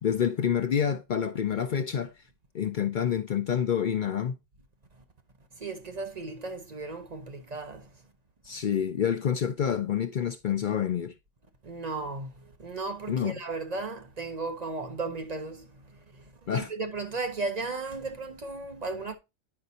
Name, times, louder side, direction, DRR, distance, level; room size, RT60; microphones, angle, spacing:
voice 1, 0.0-2.1 2.5-4.4 8.4-11.1 13.1-13.4 16.5-16.7, left 8 dB, 55° left, 0.6 m, -27 dB
voice 2, 5.6-7.9 11.6-19.2, right 3 dB, 40° right, 0.8 m, -35 dB
9.6 x 5.2 x 2.7 m
omnidirectional pair, 1.1 m